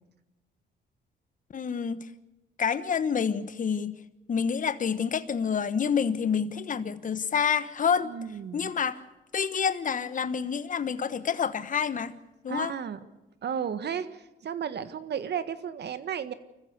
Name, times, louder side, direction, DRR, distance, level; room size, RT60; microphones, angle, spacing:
voice 1, 1.5-2.1 2.6-4.0 4.3-8.1 8.5-9.0 9.3-12.1 12.4-12.7, left 6 dB, 40° left, 13 dB, 1.2 m, -28 dB
voice 2, 8.0-8.7 12.5-13.0 13.4-16.3, right 8 dB, 55° right, 12 dB, 1.6 m, -33 dB
25.5 x 15.0 x 8.3 m, 1.0 s
cardioid pair, 90°, 20 cm